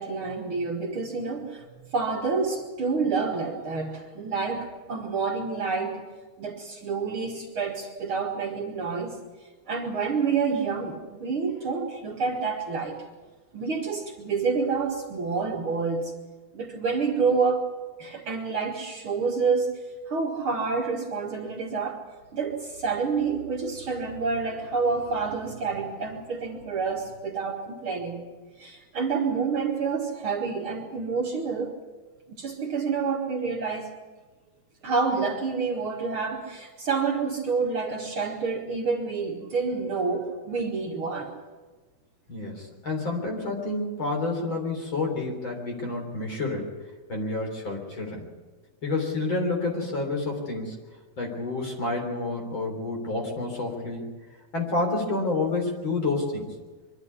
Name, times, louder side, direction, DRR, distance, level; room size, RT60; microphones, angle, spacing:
voice 1, 0.0-1.6 1.9-6.0 6.4-9.2 9.7-13.0 13.5-16.1 16.5-17.7 18.0-19.8 20.1-22.0 22.3-28.2 28.6-31.8 32.3-33.9 34.8-41.3, right 4 dB, 50° right, 0 dB, 2.5 m, -28 dB
voice 2, 42.3-46.7 47.1-48.3 48.8-50.8 51.2-54.1 54.5-56.6, left 3 dB, 40° left, 1 dB, 4.1 m, -29 dB
24.0 x 12.0 x 9.7 m, 1.3 s
omnidirectional pair, 3.4 m